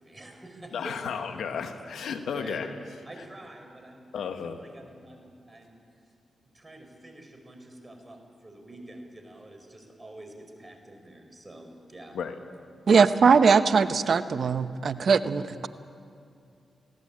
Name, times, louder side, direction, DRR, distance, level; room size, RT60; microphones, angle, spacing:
voice 1, 0.0-1.0 2.3-2.6 3.0-5.8 6.5-12.2, right 1 dB, 25° right, 4 dB, 5.0 m, -47 dB
voice 2, 0.7-2.7 4.1-4.6 12.1-12.4, left 6 dB, 80° left, 7 dB, 1.4 m, -33 dB
voice 3, 12.9-15.7, right 5 dB, 65° right, 12 dB, 0.9 m, -21 dB
20.5 x 17.5 x 8.7 m, 2.5 s
supercardioid pair, 40°, 0 cm